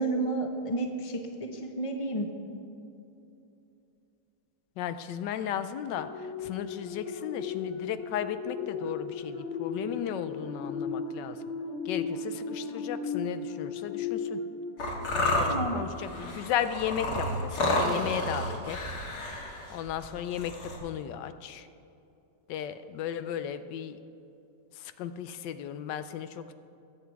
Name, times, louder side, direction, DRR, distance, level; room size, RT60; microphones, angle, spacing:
voice 1, 0.0-2.3 15.4-15.7, right 2 dB, 25° left, 4 dB, 0.9 m, -31 dB
voice 2, 4.8-11.4 11.8-14.4 15.1-19.0 19.7-21.7 22.5-24.0 24.7-26.5, left 9 dB, 85° left, 11 dB, 1.3 m, -35 dB
sound 1, 5.9-15.8 16.3-16.5, left 4 dB, 45° left, 1.2 m, -36 dB
sound 2, 14.8-20.8, left 1 dB, 65° left, 2.2 m, -30 dB
21.5 x 8.0 x 4.7 m, 2.8 s
omnidirectional pair, 1.9 m